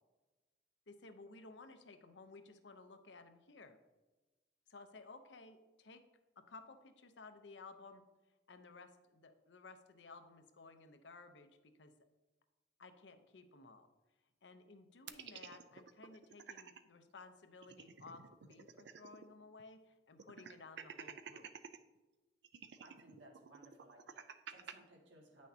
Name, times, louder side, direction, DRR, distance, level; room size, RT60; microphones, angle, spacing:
voice 1, 0.9-3.8 4.7-6.0 6.4-8.0 8.5-11.9 12.8-13.9 14.4-21.5, left 3 dB, 70° left, 8 dB, 0.7 m, -56 dB
sound 1, 15.1-16.8 17.2-17.3 17.5-19.3 19.6-19.7 20.2-21.8 22.4-24.7, right 7 dB, 65° right, 0.4 m, -51 dB
voice 2, 22.8-25.5, right 1 dB, 80° right, -1 dB, 1.8 m, -61 dB
9.2 x 6.3 x 2.8 m, 1.2 s
head